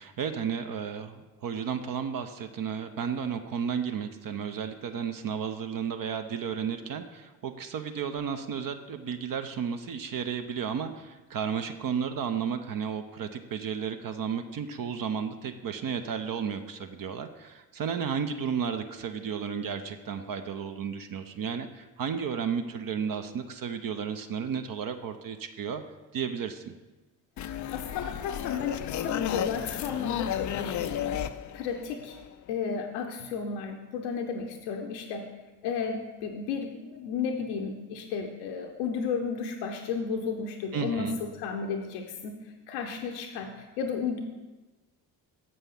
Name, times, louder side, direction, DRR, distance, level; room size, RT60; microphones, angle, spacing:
voice 1, 0.0-25.8 26.1-26.7 40.7-41.2, right 7 dB, 45° right, 8 dB, 0.7 m, -33 dB
voice 2, 27.4-31.2 31.5-32.2 32.5-35.3 35.6-42.4 42.7-44.2, left 6 dB, 70° left, 3 dB, 0.8 m, -33 dB
sound 1, 27.4-32.5, left 10 dB, 40° left, 0.4 m, -33 dB
7.2 x 5.4 x 5.6 m, 1.2 s
hypercardioid pair, 45°, 50 cm